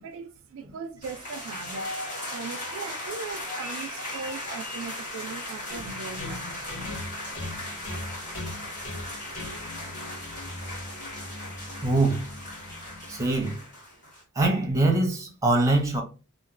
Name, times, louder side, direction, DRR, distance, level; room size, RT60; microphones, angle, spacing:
voice 1, 0.0-2.0 2.3-6.6, right 5 dB, 60° right, 0.3 m, -39 dB
sound 1, 1.0-14.2, left 1 dB, 35° left, 1.5 m, -37 dB
sound 2, 5.7-13.5, left 1 dB, 55° left, 1.2 m, -40 dB
voice 2, 11.8-12.3 13.1-13.6 14.4-16.0, right 2 dB, 15° right, 0.6 m, -23 dB
2.9 x 2.3 x 2.5 m
head